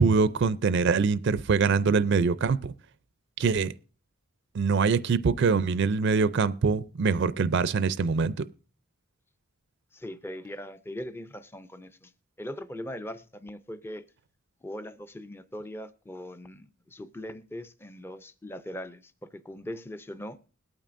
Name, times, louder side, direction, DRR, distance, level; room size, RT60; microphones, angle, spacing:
voice 1, 0.0-2.7 3.4-3.7 4.5-8.3, right 5 dB, 55° right, 0.4 m, -24 dB
voice 2, 9.9-12.1 12.4-14.0 14.6-20.4, left 1 dB, 10° left, 0.4 m, -40 dB
21.0 x 8.9 x 2.5 m
head